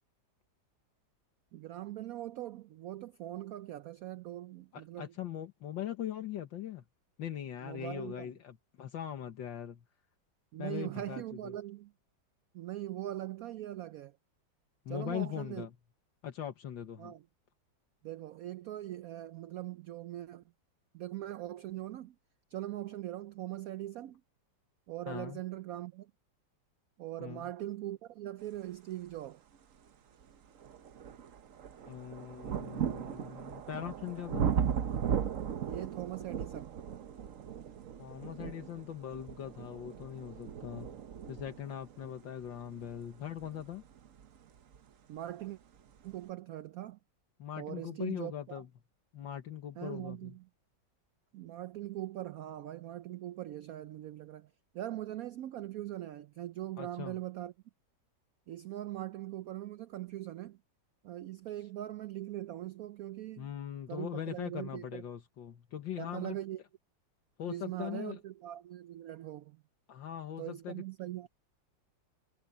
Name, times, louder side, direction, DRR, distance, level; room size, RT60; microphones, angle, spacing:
voice 1, 1.5-5.1 7.6-8.3 10.5-11.9 12.5-14.2 14.9-15.7 17.0-17.2 18.0-20.4 20.9-22.2 22.5-24.2 24.9-26.1 27.0-29.4 35.6-36.8 45.1-45.6 46.0-47.0 47.6-48.6 49.8-50.5 51.3-57.5 58.5-60.6 61.0-63.5 63.9-65.0 66.0-66.6 67.5-69.6 70.4-71.3, right 14 dB, 80° right, 0.7 m, -41 dB
voice 2, 4.7-6.8 7.2-9.8 10.6-11.5 14.9-15.7 16.2-17.1 25.1-25.4 27.2-27.5 31.9-34.5 38.0-41.0 41.3-43.8 47.4-48.7 49.1-50.3 56.8-57.2 63.4-66.4 67.4-68.2 69.9-70.8, left 10 dB, 75° left, 2.0 m, -41 dB
sound 1, 29.5-29.6 30.2-44.9 45.8-45.9, right 8 dB, 50° right, 1.1 m, -37 dB
omnidirectional pair, 2.1 m